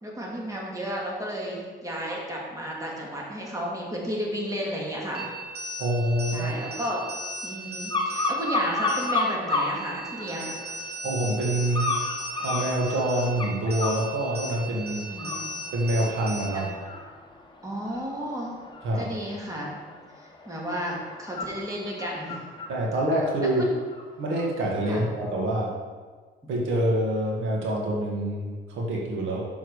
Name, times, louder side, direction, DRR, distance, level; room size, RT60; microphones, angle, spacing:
voice 1, 0.0-5.3 6.3-7.0 7.4-10.5 15.1-15.5 16.5-16.7 17.6-18.6 18.9-19.7 20.2-22.4 23.6-23.7 24.9-25.0, equal, 15° right, -3 dB, 2.2 m, -33 dB
sound 1, 5.1-16.7, right 1 dB, 50° right, 1.8 m, -37 dB
voice 2, 5.8-6.5 11.0-11.9 12.4-15.0 15.7-16.6 18.8-19.0 22.7-23.6 24.2-25.7 26.5-29.4, right 1 dB, 80° right, -3 dB, 1.7 m, -26 dB
sound 2, 7.9-9.7 10.2-10.8 11.7-14.0 14.5-14.8 15.1-24.4 24.8-25.0, left 3 dB, 25° left, 1.2 m, -32 dB
6.5 x 6.4 x 4.8 m, 1.5 s
cardioid pair, 90°, 20 cm